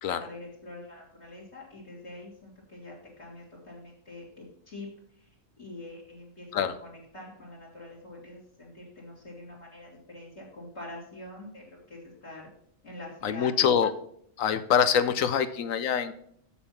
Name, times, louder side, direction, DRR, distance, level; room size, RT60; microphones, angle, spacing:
voice 1, 0.2-4.9 5.1-5.3 5.6-6.5 6.8-12.5 12.8-13.5, left 2 dB, 50° left, -3 dB, 2.7 m, -45 dB
voice 2, 13.2-13.9 14.4-16.1, left 8 dB, 70° left, 12 dB, 1.0 m, -24 dB
7.1 x 6.9 x 5.6 m, 0.66 s
omnidirectional pair, 1.5 m